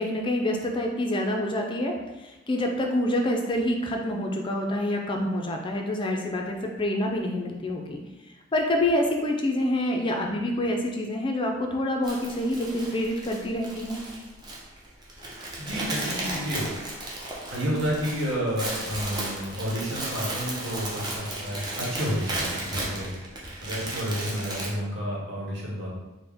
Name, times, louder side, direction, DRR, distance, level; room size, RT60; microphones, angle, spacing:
voice 1, 0.0-1.9 2.2-8.0 8.5-14.0, left 1 dB, 25° left, 2 dB, 0.4 m, -27 dB
sound 1, 12.0-24.7, right 1 dB, 20° right, 0.6 m, -35 dB
voice 2, 15.6-16.7 17.5-25.9, equal, 65° right, -4 dB, 1.1 m, -30 dB
4.2 x 2.1 x 3.5 m, 1.1 s
head